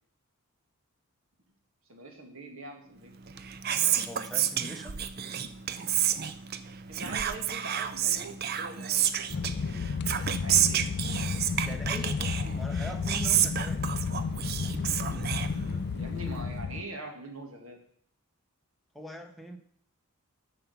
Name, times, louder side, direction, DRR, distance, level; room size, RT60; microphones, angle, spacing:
voice 1, 1.9-3.1 6.9-9.9 10.4-10.8 15.9-17.8, right 2 dB, 65° right, 3 dB, 2.0 m, -43 dB
Whispering, 3.2-16.1, right 10 dB, 45° right, 0.5 m, -30 dB
voice 2, 4.1-4.9 11.6-13.8 18.9-19.6, equal, ahead, 3 dB, 0.9 m, -41 dB
sound 1, 9.3-16.8, left 5 dB, 45° left, 0.3 m, -32 dB
8.4 x 5.7 x 7.0 m, 0.64 s
head